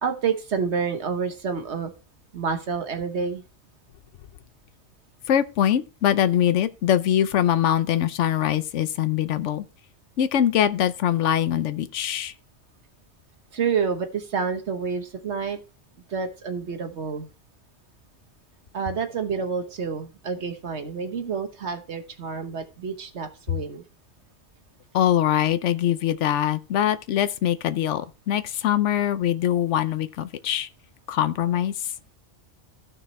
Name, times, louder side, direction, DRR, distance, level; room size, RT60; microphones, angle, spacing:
voice 1, 0.0-1.9 2.3-3.4 13.5-15.6 16.1-17.3 18.7-23.8, right 5 dB, 70° right, 1.4 m, -28 dB
voice 2, 5.3-9.6 10.2-12.3 24.9-30.7 31.1-31.9, left 10 dB, 85° left, 1.0 m, -23 dB
15.5 x 6.0 x 3.2 m
omnidirectional pair, 1.2 m